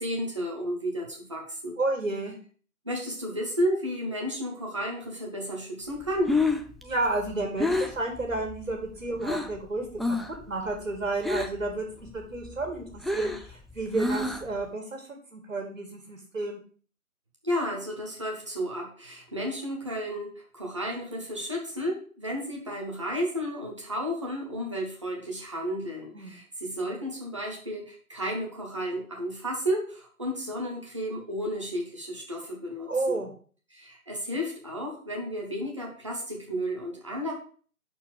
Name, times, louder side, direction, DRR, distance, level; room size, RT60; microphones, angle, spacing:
voice 1, 0.0-1.8 2.8-6.4 17.4-33.2 33.7-37.3, equal, 20° right, -1 dB, 1.1 m, -32 dB
voice 2, 1.8-2.4 6.8-10.2 10.5-16.6 26.1-26.3 32.9-33.3, right 2 dB, 60° right, 2 dB, 2.1 m, -31 dB
Breathing, 6.0-9.6 10.0-10.4 10.7-11.7 12.1-14.6, left 2 dB, ahead, 0.3 m, -29 dB
5.8 x 4.4 x 6.4 m, 0.43 s
figure-of-eight pair, 165°, 43 cm